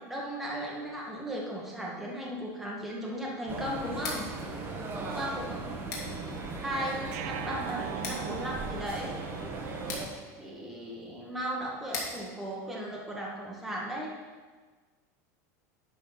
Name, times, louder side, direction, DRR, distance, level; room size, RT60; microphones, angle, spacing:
voice 1, 0.0-4.3 4.9-5.6 6.6-9.2 10.4-14.1, equal, ahead, -4 dB, 1.3 m, -36 dB
sound 1, 3.5-10.1, right 3 dB, 25° right, 1.1 m, -37 dB
Scissors, 3.9-13.7, left 4 dB, 80° left, 2.5 m, -45 dB
voice 2, 4.8-6.2 9.6-10.6, equal, 15° left, -7 dB, 1.6 m, -50 dB
sound 2, 7.1-10.2, right 15 dB, 65° right, 0.4 m, -42 dB
11.0 x 4.3 x 5.5 m, 1.4 s
supercardioid pair, 160°, 9 cm